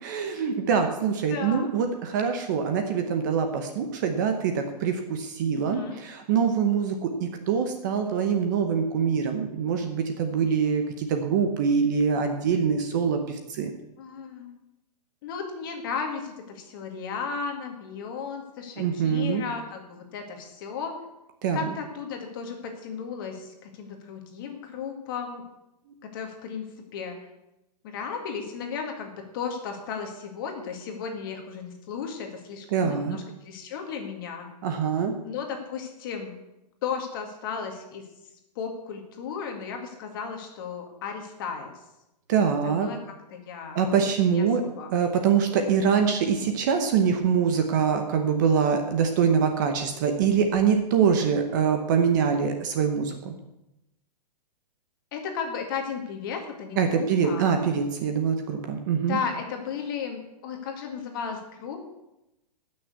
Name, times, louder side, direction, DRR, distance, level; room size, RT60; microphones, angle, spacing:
voice 1, 0.0-13.8 18.8-19.4 21.4-21.7 32.7-33.2 34.6-35.1 42.3-42.9 43.7-44.6 44.9-53.3 56.8-59.2, right 6 dB, 30° right, 6 dB, 0.9 m, -24 dB
voice 2, 1.3-1.7 5.5-6.0 14.0-14.6 15.2-21.0 21.5-25.4 26.1-26.6 26.9-27.2 27.8-34.5 35.2-36.3 36.8-38.0 38.6-41.7 42.6-43.0 43.3-43.9 44.3-44.9 55.1-57.5 59.1-61.8, left 6 dB, 30° left, 4 dB, 1.9 m, -35 dB
14.0 x 6.5 x 8.2 m, 0.92 s
hypercardioid pair, 180°, 21 cm